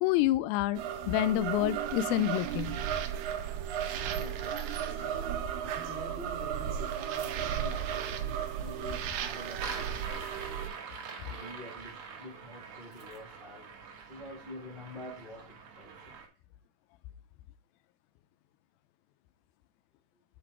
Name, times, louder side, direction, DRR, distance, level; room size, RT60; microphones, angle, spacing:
voice 1, 0.0-0.8 1.1-2.7, left 14 dB, 85° left, 2.4 m, -28 dB
sound 1, 0.7-10.7, right 9 dB, 75° right, 1.9 m, -34 dB
voice 2, 4.1-5.2 5.6-10.6 11.2-13.8 14.1-16.2, left 1 dB, 65° left, 0.5 m, -47 dB
sound 2, 9.5-16.3, right 5 dB, 60° right, 1.6 m, -44 dB
8.9 x 4.2 x 4.7 m
omnidirectional pair, 4.2 m